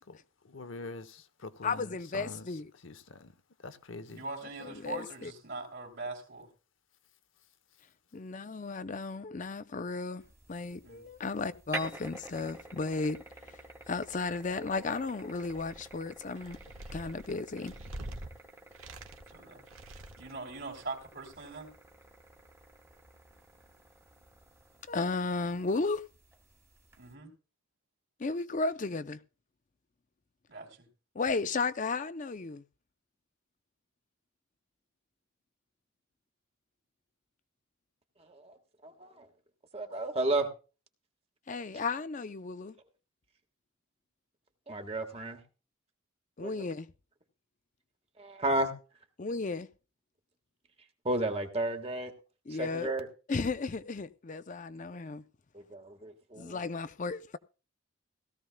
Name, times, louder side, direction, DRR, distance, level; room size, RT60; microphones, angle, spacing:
voice 1, 0.4-2.5 2.8-3.3 3.6-4.3, left 2 dB, 65° left, 0.9 m, -45 dB
voice 2, 1.6-2.7 4.6-5.3 8.1-10.2 10.5-13.2 13.5-13.6 13.9-16.6 16.9-17.7 24.9-26.0 28.2-29.2 31.1-32.6 41.5-42.7 46.4-46.9 49.2-49.7 52.5-52.9 53.3-55.2 56.4-57.4, left 3 dB, 35° left, 0.5 m, -34 dB
voice 3, 4.1-6.5 10.8-11.0 19.3-19.7 20.2-21.7 27.0-27.3 30.5-30.9, right 3 dB, 50° right, 2.8 m, -42 dB
sound 1, 10.2-27.1, right 2 dB, 15° right, 1.2 m, -49 dB
sound 2, 15.3-15.9 16.4-18.3 18.7-19.4 19.7-20.4, right 1 dB, 80° right, 1.3 m, -45 dB
voice 4, 38.8-39.3 39.7-40.5 44.7-45.4 46.4-46.6 48.2-48.7 51.0-52.1 52.6-53.1 55.5-56.6, right 2 dB, 30° right, 1.4 m, -32 dB
17.0 x 14.0 x 2.2 m
head